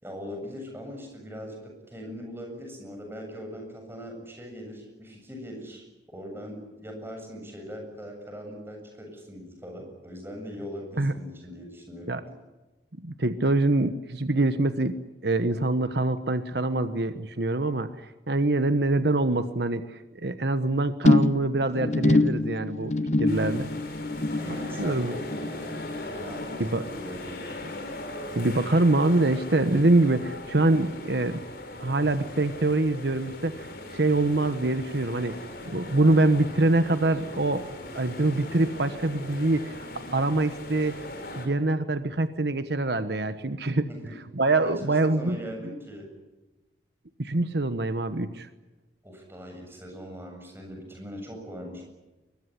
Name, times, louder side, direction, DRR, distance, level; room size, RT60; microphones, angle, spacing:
voice 1, 0.0-12.3 24.4-25.7 26.1-27.5 43.9-44.2 44.6-46.1 49.0-51.9, equal, 15° right, 2 dB, 7.6 m, -41 dB
voice 2, 13.0-22.9 23.2-23.7 24.8-25.2 26.6-26.8 28.3-31.4 31.8-35.4 35.6-37.6 37.9-41.0 41.3-43.9 44.3-45.4 47.2-48.5, right 2 dB, 70° right, 10 dB, 1.2 m, -25 dB
sound 1, 21.1-27.6 27.9-28.3 28.7-28.8, left 2 dB, 40° left, 0.8 m, -26 dB
sound 2, 23.3-41.5, left 2 dB, 55° left, 4.9 m, -39 dB
23.0 x 21.5 x 10.0 m, 1.1 s
head